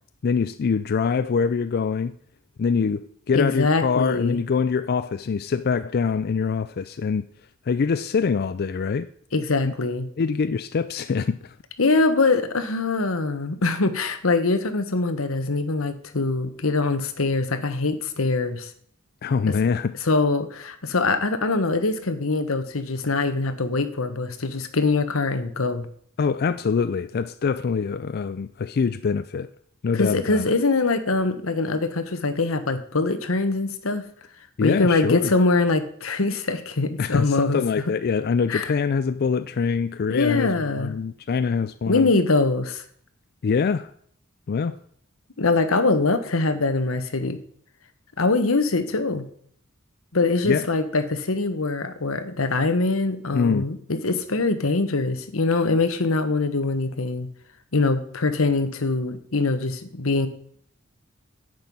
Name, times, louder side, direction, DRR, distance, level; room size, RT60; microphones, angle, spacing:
voice 1, 0.2-2.1 2.6-7.2 7.7-9.1 9.7-9.8 10.2-11.5 19.2-19.9 26.2-29.5 29.8-30.4 34.6-35.3 37.0-42.1 43.4-43.9 44.5-44.8 50.5-50.7 53.3-53.6, left 5 dB, 50° left, 0.4 m, -24 dB
voice 2, 3.3-4.4 9.3-10.1 11.8-18.7 19.5-19.6 20.0-25.9 29.9-34.1 34.6-37.6 38.5-38.7 40.1-40.9 41.9-42.8 45.4-47.4 48.2-49.3 50.1-57.3 57.7-60.3, left 3 dB, 85° left, 1.2 m, -23 dB
10.5 x 8.0 x 5.4 m
head